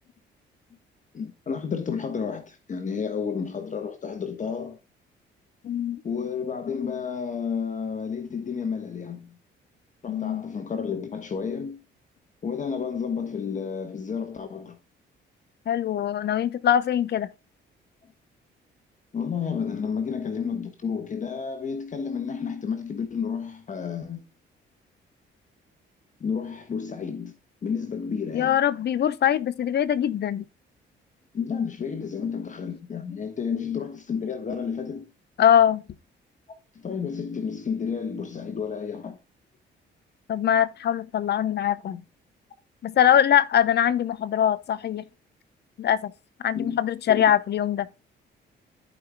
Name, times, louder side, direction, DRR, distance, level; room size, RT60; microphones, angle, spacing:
voice 1, 1.1-4.8 6.0-9.4 10.0-11.8 12.4-14.8 19.1-24.2 26.2-27.3 27.6-28.6 31.3-35.1 36.7-39.2 41.4-41.5 46.5-46.8 47.1-47.3, left 6 dB, 40° left, 1.3 m, -31 dB
voice 2, 5.6-6.0 10.1-10.4 15.7-17.3 28.3-30.4 33.5-33.8 35.4-35.8 40.3-42.0 42.8-45.0 45.8-46.1 46.4-47.9, left 10 dB, 55° left, 0.8 m, -22 dB
14.5 x 5.2 x 2.2 m
cardioid pair, 90°, 20 cm